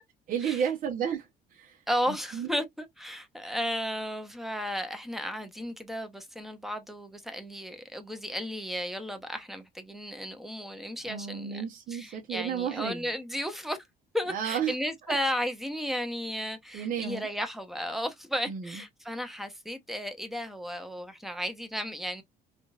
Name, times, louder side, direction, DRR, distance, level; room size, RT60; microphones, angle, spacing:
voice 1, 0.3-1.8 2.3-2.5 11.0-13.1 14.3-14.7 15.1-15.2 16.7-17.3 18.5-18.7, right 8 dB, 55° right, 0.9 m, -32 dB
voice 2, 1.9-11.6 11.9-13.8 14.1-22.2, equal, ahead, 0.8 m, -34 dB
3.7 x 2.5 x 2.4 m
cardioid pair, 110°, 17 cm